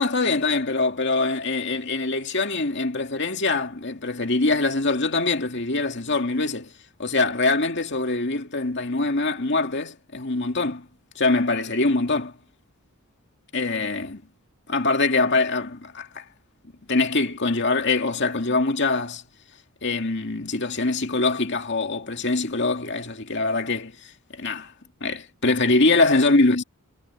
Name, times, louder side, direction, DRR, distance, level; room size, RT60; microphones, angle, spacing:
voice 1, 0.0-6.7 7.0-10.9 11.2-12.3 13.5-14.2 14.7-16.2 16.9-19.2 19.8-23.9 24.3-24.7 25.0-26.6, left 3 dB, 55° left, 2.3 m, -23 dB
head